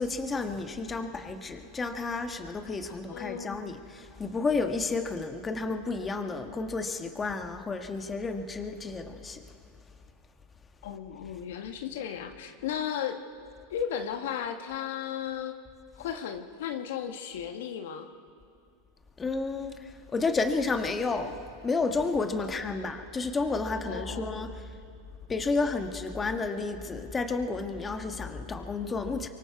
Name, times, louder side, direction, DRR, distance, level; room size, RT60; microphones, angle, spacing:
voice 1, 0.0-9.4 19.2-24.7 25.3-29.3, left 3 dB, 20° left, 6 dB, 1.5 m, -31 dB
voice 2, 3.1-3.6 10.8-13.2 13.7-15.5 16.0-18.1 22.5-23.0 23.8-24.6, left 9 dB, 70° left, 7 dB, 1.3 m, -35 dB
24.5 x 23.5 x 4.7 m, 2.3 s
hypercardioid pair, 110°, 0 cm